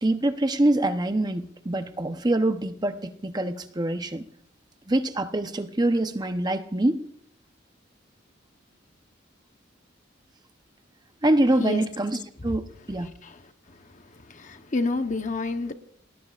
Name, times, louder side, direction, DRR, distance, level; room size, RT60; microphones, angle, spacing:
voice 1, 0.0-4.2 4.9-7.0 11.2-13.1, right 1 dB, 20° right, 8 dB, 0.8 m, -25 dB
voice 2, 14.3-15.7, left 3 dB, 40° left, 8 dB, 0.9 m, -28 dB
30.0 x 19.5 x 2.5 m, 0.70 s
head